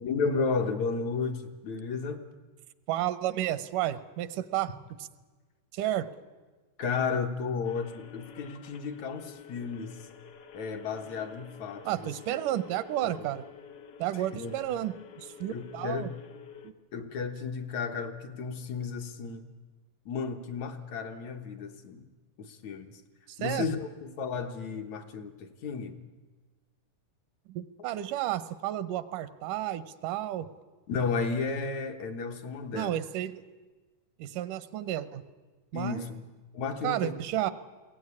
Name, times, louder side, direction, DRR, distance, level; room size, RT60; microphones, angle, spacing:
voice 1, 0.0-2.2 6.8-9.9 10.5-12.1 13.0-13.2 14.3-14.6 15.5-16.1 16.9-19.5 20.1-22.1 22.4-23.0 23.4-26.0 30.9-33.0 35.7-36.2 36.5-37.2, left 5 dB, 65° left, 5 dB, 2.4 m, -33 dB
voice 2, 2.9-4.7 5.7-6.1 11.9-13.4 14.0-16.1 16.6-16.7 23.3-23.8 27.5-30.5 32.7-33.4 34.2-35.2 35.7-36.1 36.8-37.5, right 13 dB, 80° right, 14 dB, 2.4 m, -32 dB
sound 1, 7.6-16.7, left 7 dB, 85° left, 1.0 m, -50 dB
22.0 x 17.0 x 9.8 m, 1.3 s
omnidirectional pair, 3.7 m